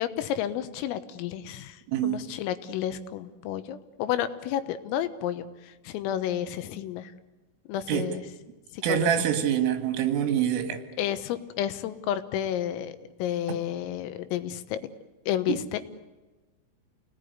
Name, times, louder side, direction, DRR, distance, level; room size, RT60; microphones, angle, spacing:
voice 1, 0.0-7.1 7.7-8.2 8.7-9.1 11.0-14.8 15.3-15.8, left 11 dB, 85° left, 11 dB, 3.8 m, -31 dB
voice 2, 1.9-2.2 7.9-8.1 8.8-10.8, right 10 dB, 80° right, 7 dB, 4.4 m, -25 dB
28.0 x 18.5 x 9.5 m, 1.2 s
omnidirectional pair, 5.8 m